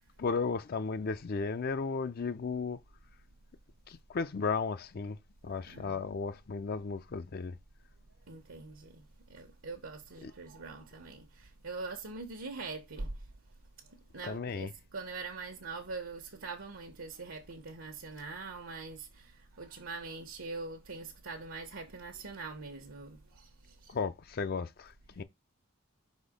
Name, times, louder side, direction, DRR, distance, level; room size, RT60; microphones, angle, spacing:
voice 1, 0.2-2.8 3.9-5.2 5.4-7.5 10.2-10.3 14.2-14.7 23.9-25.2, left 4 dB, 50° left, 0.5 m, -34 dB
voice 2, 5.6-6.0 8.3-13.2 13.9-23.9, right 3 dB, 85° right, 1.1 m, -43 dB
5.2 x 4.3 x 5.0 m
head